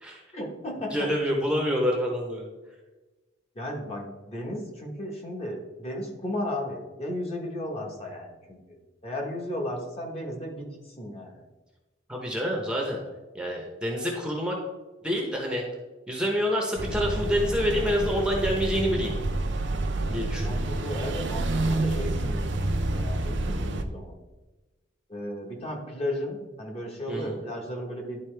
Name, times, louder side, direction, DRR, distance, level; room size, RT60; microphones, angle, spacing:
voice 1, 0.3-1.1 3.5-11.4 20.4-24.1 25.1-28.2, left 1 dB, 30° left, 0 dB, 1.3 m, -35 dB
voice 2, 0.9-2.5 12.1-13.0 13.3-14.6 15.0-15.6 16.1-19.2 20.1-20.6 27.1-27.4, equal, 5° right, 0 dB, 0.9 m, -27 dB
sound 1, 16.8-23.8, right 2 dB, 65° right, 0.6 m, -28 dB
11.0 x 4.1 x 3.4 m, 1.2 s
head